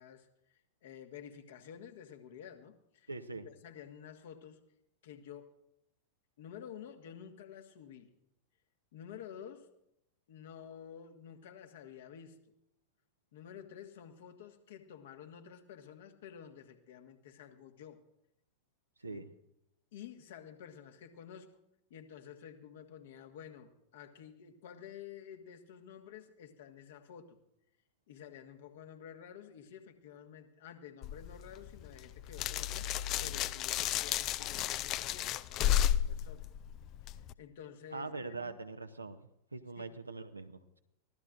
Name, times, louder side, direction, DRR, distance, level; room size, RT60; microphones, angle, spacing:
voice 1, 0.0-3.1 3.4-4.6 5.0-5.5 6.4-8.1 8.9-9.7 10.3-12.4 13.3-18.0 19.0-19.2 19.9-21.5 21.9-27.4 28.1-36.5 37.0-38.6 39.8-39.9, left 8 dB, 55° left, 5 dB, 1.7 m, -51 dB
voice 2, 3.1-3.5 19.0-19.3 37.9-39.2 39.5-40.8, right 3 dB, 80° right, 7 dB, 0.8 m, -42 dB
sound 1, 31.0-37.3, left 11 dB, 35° left, 0.4 m, -33 dB
24.0 x 16.0 x 2.6 m, 0.79 s
figure-of-eight pair, 90°, 0 cm